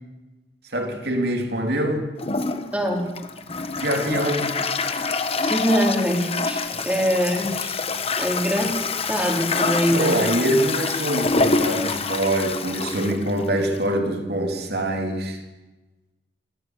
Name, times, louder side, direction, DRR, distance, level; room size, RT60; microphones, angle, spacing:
voice 1, 0.7-2.1 3.7-4.5 5.0-5.1 6.7-6.8 9.9-15.4, right 1 dB, 60° right, 3.4 m, -24 dB
Toilet flush, 2.2-14.0, left 4 dB, 35° left, 1.3 m, -26 dB
voice 2, 5.4-7.8 8.2-8.7 9.1-10.2, equal, 10° right, 4.2 m, -23 dB
24.0 x 16.5 x 8.2 m
head